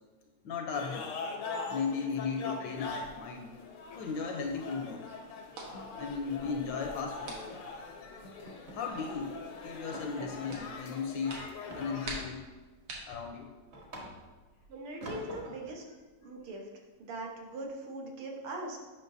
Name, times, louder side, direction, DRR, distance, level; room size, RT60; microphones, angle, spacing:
voice 1, 0.4-1.1 1.5-3.5 4.0-5.1 6.0-7.4 8.7-9.4 9.6-11.4 11.7-12.5 13.1-13.5, left 5 dB, 75° left, 3 dB, 1.1 m, -36 dB
sound 1, 0.7-12.2, left 4 dB, 90° left, 1.7 m, -43 dB
sound 2, 3.0-3.6 3.9-4.1 4.4-4.6 4.9-5.0 5.4-7.0 7.5-7.8 8.2-9.2 9.5-9.6 9.9-10.7 11.7-12.4 12.9-14.5 15.0-15.8, equal, 40° right, 1.1 m, -47 dB
sound 3, 3.4-14.7, right 2 dB, 70° right, 1.9 m, -50 dB
voice 2, 14.7-15.8 16.2-16.6 17.0-18.8, right 2 dB, 85° right, 0 dB, 2.0 m, -40 dB
8.7 x 5.6 x 2.6 m, 1.3 s
omnidirectional pair, 2.4 m